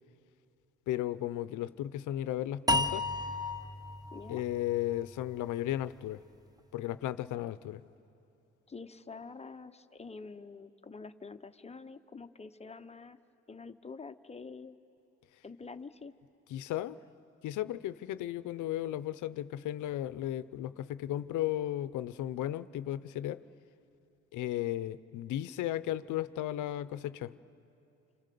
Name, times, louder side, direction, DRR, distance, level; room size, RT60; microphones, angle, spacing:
voice 1, 0.9-3.0 4.3-6.2 6.7-7.8 16.5-17.0 17.4-23.4 24.3-27.3, left 13 dB, 80° left, 15 dB, 0.7 m, -35 dB
sound 1, 2.7-5.9, left 2 dB, 10° right, 0.8 m, -34 dB
voice 2, 4.1-4.4 8.7-13.2 13.5-14.8 15.4-16.1, left 4 dB, 20° left, 9 dB, 0.8 m, -47 dB
27.0 x 27.0 x 6.8 m, 2.8 s
cardioid pair, 90°, 30 cm